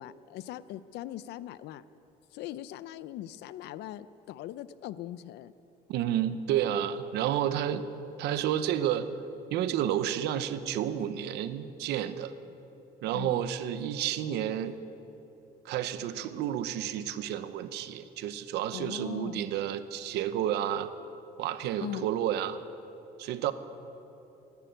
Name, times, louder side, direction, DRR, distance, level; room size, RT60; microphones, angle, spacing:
voice 1, 0.0-1.8 2.3-5.5 13.1-13.4 18.7-19.5 21.8-22.1, left 13 dB, 80° left, 16 dB, 0.6 m, -40 dB
voice 2, 5.9-7.8 8.2-9.1 9.5-12.3 13.0-14.8 15.6-20.9 21.4-22.6 23.2-23.5, right 10 dB, 85° right, 12 dB, 0.8 m, -30 dB
14.5 x 11.0 x 9.2 m, 2.9 s
cardioid pair, 110°, 17 cm